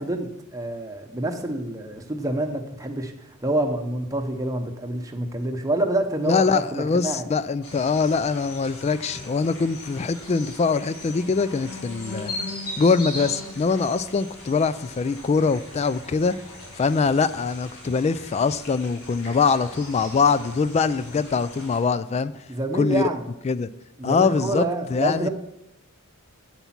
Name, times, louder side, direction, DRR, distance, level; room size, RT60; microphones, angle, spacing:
voice 1, 0.0-7.3 22.5-23.2 24.0-25.3, right 1 dB, 15° right, 4 dB, 0.8 m, -27 dB
voice 2, 6.3-12.3 12.8-16.3 16.8-22.4 22.7-23.0 23.4-23.7 24.0-25.3, left 4 dB, 30° left, 16 dB, 0.3 m, -23 dB
sound 1, 7.6-21.8, left 2 dB, 80° left, 3.8 m, -39 dB
8.2 x 8.1 x 5.9 m, 0.84 s
head